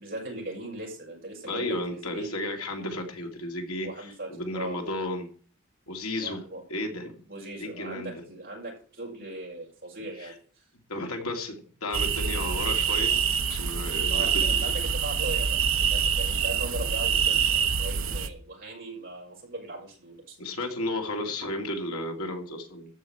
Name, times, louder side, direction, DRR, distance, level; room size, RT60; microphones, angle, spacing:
voice 1, 0.0-2.3 3.8-4.8 6.2-6.6 7.3-10.3 14.1-20.4, right 2 dB, 45° right, -1 dB, 6.1 m, -39 dB
voice 2, 1.5-5.3 5.9-6.4 6.7-7.1 7.6-8.2 10.2-10.3 10.9-11.6 11.8-13.2 13.5-14.7 20.4-22.9, left 1 dB, 90° left, 3 dB, 2.6 m, -33 dB
sound 1, 11.9-18.3, right 7 dB, 65° right, 1.1 m, -25 dB
14.0 x 5.1 x 8.6 m, 0.43 s
head